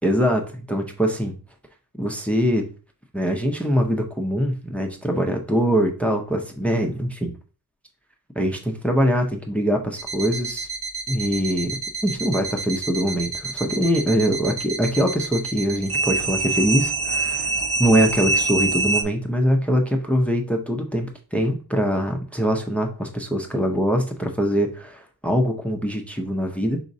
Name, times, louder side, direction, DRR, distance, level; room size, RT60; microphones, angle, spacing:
voice 1, 0.0-1.3 2.0-2.7 3.1-7.3 8.4-10.7 11.1-17.5 17.8-26.8, equal, 5° left, 3 dB, 0.5 m, -23 dB
sound 1, 10.0-19.0, right 3 dB, 40° right, 0.6 m, -26 dB
5.0 x 4.0 x 2.6 m, 0.37 s
wide cardioid pair, 150°, 37 cm